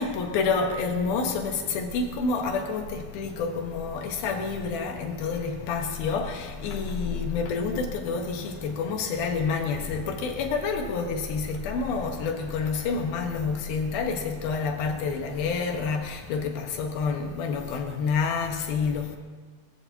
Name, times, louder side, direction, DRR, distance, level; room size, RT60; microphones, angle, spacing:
voice 1, 0.0-19.2, left 5 dB, 70° left, 3.2 m, -28 dB
22.5 x 15.5 x 3.0 m
omnidirectional pair, 4.5 m